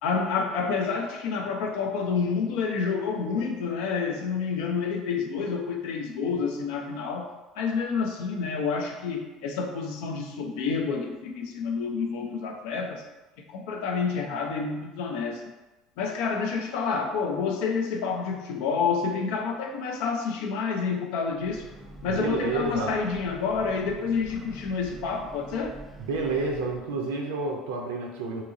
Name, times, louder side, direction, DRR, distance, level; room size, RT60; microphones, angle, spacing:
voice 1, 0.0-13.0 13.5-15.4 16.0-21.7 22.0-25.8, left 5 dB, 70° left, 3 dB, 0.4 m, -29 dB
Breathing / Train, 21.3-27.0, right 2 dB, 10° right, 0.6 m, -46 dB
voice 2, 22.1-22.9 26.1-28.4, right 3 dB, 80° right, 1 dB, 0.4 m, -29 dB
2.8 x 2.4 x 3.9 m, 1.1 s
hypercardioid pair, 70°, 0 cm